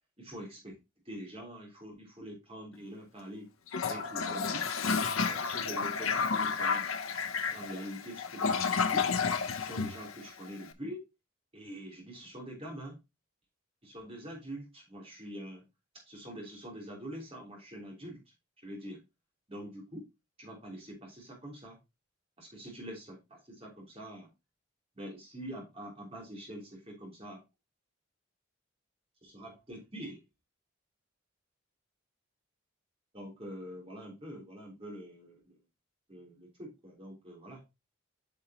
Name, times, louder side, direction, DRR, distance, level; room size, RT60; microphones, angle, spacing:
voice 1, 0.2-0.8 1.0-3.5 3.8-4.7 5.2-6.9 7.5-9.1 9.5-11.1 11.5-13.0 13.8-15.6 16.0-18.2 18.6-19.0 19.5-20.0 20.4-21.8 22.4-24.3 24.9-27.4 29.2-30.2 33.1-35.6 36.1-37.6, equal, 25° right, -1 dB, 3.3 m, -45 dB
Toilet flush, 3.7-10.6, left 5 dB, 80° left, 0.8 m, -31 dB
9.1 x 5.6 x 2.9 m, 0.24 s
head